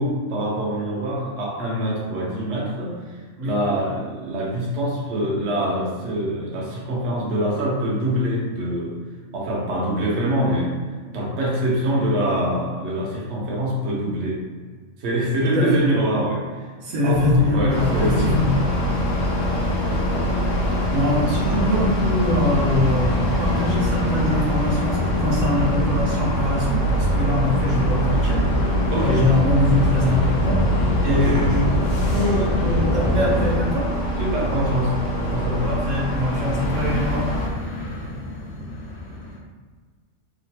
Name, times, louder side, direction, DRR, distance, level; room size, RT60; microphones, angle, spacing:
voice 1, 0.0-9.0 9.3-10.8 11.1-14.4 15.0-16.7 17.0-18.8 19.1-19.4 19.9-20.0 28.9-29.3 31.1-31.4 34.2-35.7, right 1 dB, 65° right, -4 dB, 0.9 m, -24 dB
voice 2, 15.4-15.8 16.8-18.5 20.9-28.5 29.0-30.6 31.0-31.6 32.1-33.9 35.6-37.3, left 1 dB, 85° right, -5 dB, 1.2 m, -23 dB
sound 1, 17.1-33.6, left 2 dB, 85° left, 1.0 m, -26 dB
sound 2, 17.7-37.5, equal, 45° left, 0.5 m, -24 dB
sound 3, 35.1-39.4, left 2 dB, 65° left, 0.9 m, -33 dB
3.1 x 2.1 x 4.0 m, 1.5 s
omnidirectional pair, 1.3 m